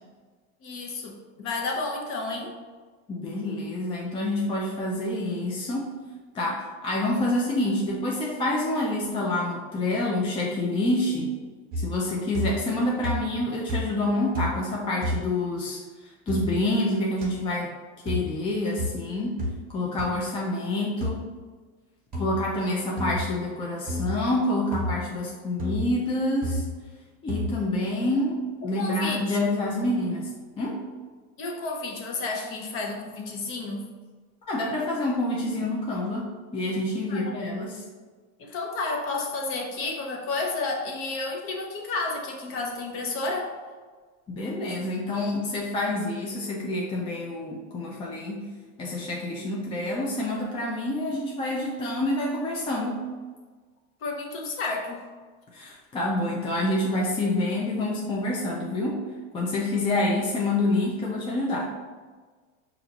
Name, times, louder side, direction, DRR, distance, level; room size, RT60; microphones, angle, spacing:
voice 1, 0.6-2.6 28.7-29.4 31.4-33.8 37.1-37.4 38.4-43.5 54.0-55.1, left 3 dB, 40° left, 1 dB, 0.8 m, -31 dB
voice 2, 3.1-5.9 6.3-11.3 11.8-17.7 18.0-19.4 19.7-21.3 22.1-26.6 27.2-30.3 30.6-30.8 34.5-37.8 44.3-48.5 48.8-53.0 55.5-59.0 59.3-61.7, left 1 dB, 15° left, -3 dB, 0.4 m, -27 dB
sound 1, 11.7-12.1 12.3-12.8 13.0-13.4 13.7-14.1 14.3-14.7 15.0-15.2 16.3-16.5 17.2-17.3 18.1-18.3 18.8-19.0 19.4-19.6 20.0-20.1 21.0-21.2 22.1-22.4 23.0-23.3 23.9-24.2 24.7-24.9 25.6-25.9 26.4-26.7 27.3-27.5, left 1 dB, 25° right, 0.8 m, -30 dB
5.5 x 2.6 x 2.8 m, 1.4 s
supercardioid pair, 130°, 35 cm